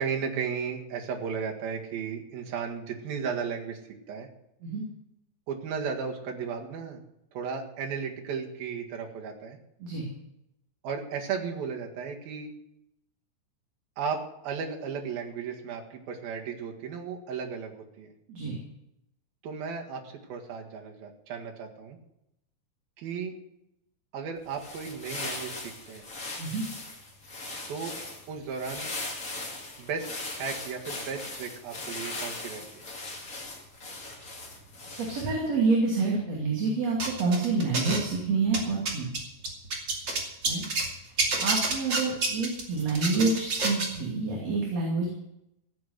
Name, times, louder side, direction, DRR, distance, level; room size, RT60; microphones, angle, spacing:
voice 1, 0.0-3.8 4.1-4.3 5.5-7.0 7.3-9.6 10.8-12.5 14.0-18.1 19.4-22.0 23.0-23.3 24.1-26.0 27.7-27.9 28.3-28.9 29.8-32.8, right 6 dB, 90° right, 1 dB, 3.7 m, -35 dB
sound 1, 24.4-35.5, left 2 dB, 25° left, 2.7 m, -39 dB
voice 2, 35.0-39.1 40.5-40.6 41.4-45.1, right 3 dB, 50° right, -2 dB, 3.7 m, -27 dB
sound 2, 37.0-38.2 38.5-40.9 41.2-44.0, right 3 dB, 35° right, 2.9 m, -28 dB
15.5 x 8.5 x 8.1 m, 0.82 s
omnidirectional pair, 4.1 m